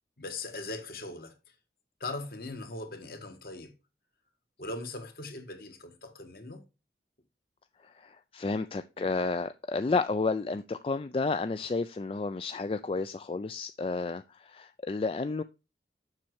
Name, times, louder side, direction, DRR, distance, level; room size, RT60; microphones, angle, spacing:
voice 1, 0.2-1.5 2.0-3.7 4.6-6.6, left 2 dB, 55° left, 1.6 m, -40 dB
voice 2, 7.8-15.4, left 3 dB, 30° left, 0.3 m, -31 dB
7.3 x 6.2 x 4.7 m
head